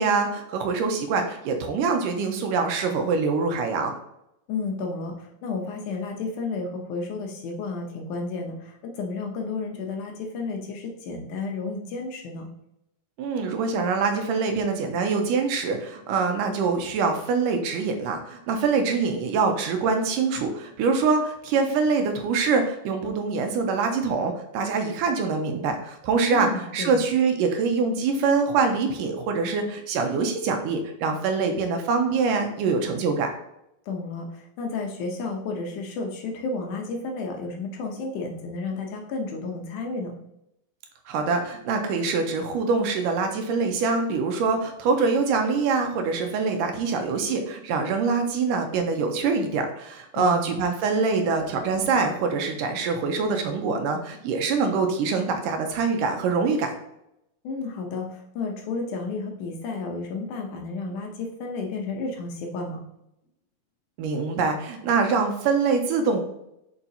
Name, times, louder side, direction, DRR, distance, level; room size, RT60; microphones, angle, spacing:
voice 1, 0.0-3.9 13.2-33.3 41.1-56.8 64.0-66.2, right 4 dB, 80° right, 5 dB, 2.2 m, -24 dB
voice 2, 4.5-12.5 26.3-27.0 33.9-40.1 50.1-50.5 57.4-62.8, left 3 dB, 70° left, 2 dB, 2.1 m, -32 dB
7.0 x 5.6 x 2.7 m, 0.81 s
omnidirectional pair, 4.0 m